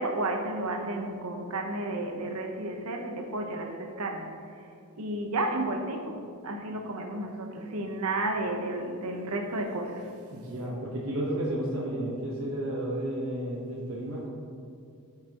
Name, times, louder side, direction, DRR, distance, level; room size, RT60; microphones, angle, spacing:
voice 1, 0.0-4.3 5.0-10.1, right 2 dB, 85° right, 3 dB, 0.9 m, -32 dB
voice 2, 10.3-14.3, right 1 dB, 60° right, -5 dB, 1.1 m, -32 dB
10.5 x 5.9 x 3.0 m, 2.4 s
head